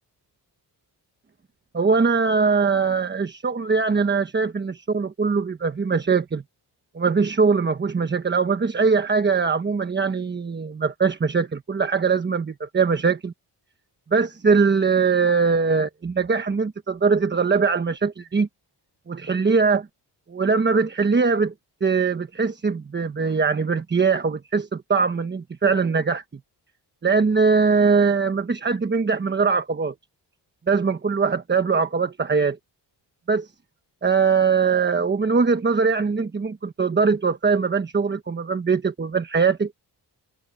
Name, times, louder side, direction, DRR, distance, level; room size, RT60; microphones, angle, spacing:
voice 1, 1.7-6.4 6.9-13.3 14.1-18.5 19.1-19.9 20.3-21.5 21.8-26.2 27.0-29.9 30.7-32.6 33.3-33.5 34.0-39.7, right 5 dB, 25° right, 1.1 m, -21 dB
wide cardioid pair, 155°, 41 cm